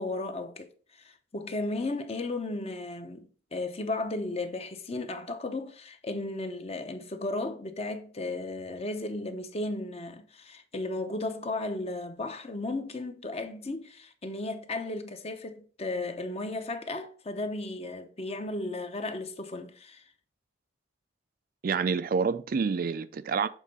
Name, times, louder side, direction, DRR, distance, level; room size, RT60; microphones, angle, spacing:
voice 1, 0.0-20.0, left 2 dB, 30° left, 0.8 m, -35 dB
voice 2, 21.6-23.5, right 5 dB, 50° right, 0.4 m, -28 dB
7.3 x 3.8 x 5.5 m
head